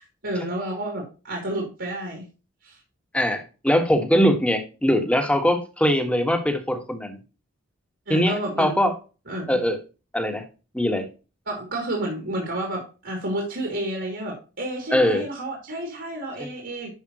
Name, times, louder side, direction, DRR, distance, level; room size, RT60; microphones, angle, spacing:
voice 1, 0.0-2.2 2.6-2.8 8.1-8.8 9.3-9.6 11.5-16.9, right 1 dB, 65° right, 0 dB, 2.9 m, -30 dB
voice 2, 3.1-7.2 8.1-8.9 9.5-9.8 10.1-10.4 10.7-11.0 14.9-15.2, equal, 5° left, 5 dB, 1.5 m, -21 dB
11.0 x 5.4 x 3.0 m, 0.32 s
head